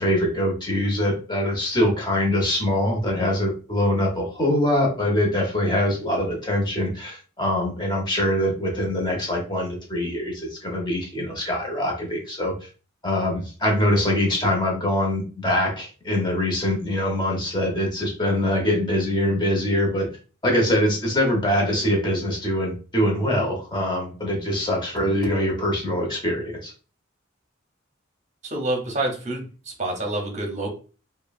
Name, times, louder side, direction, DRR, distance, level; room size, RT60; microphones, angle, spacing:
voice 1, 0.0-12.7 13.0-20.1 20.4-26.7, left 1 dB, 20° left, -1 dB, 0.9 m, -23 dB
voice 2, 28.4-30.7, right 2 dB, 35° right, 2 dB, 0.8 m, -28 dB
3.0 x 2.2 x 2.3 m, 0.36 s
head